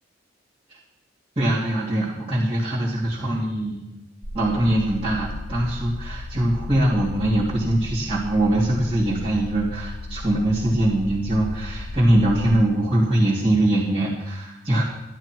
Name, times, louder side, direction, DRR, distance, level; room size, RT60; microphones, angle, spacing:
voice 1, 1.4-3.8 4.3-14.8, right 1 dB, 30° right, -10 dB, 3.0 m, -22 dB
sound 1, 4.2-12.5, left 2 dB, 55° left, 2.8 m, -35 dB
12.5 x 12.5 x 4.6 m, 0.91 s
head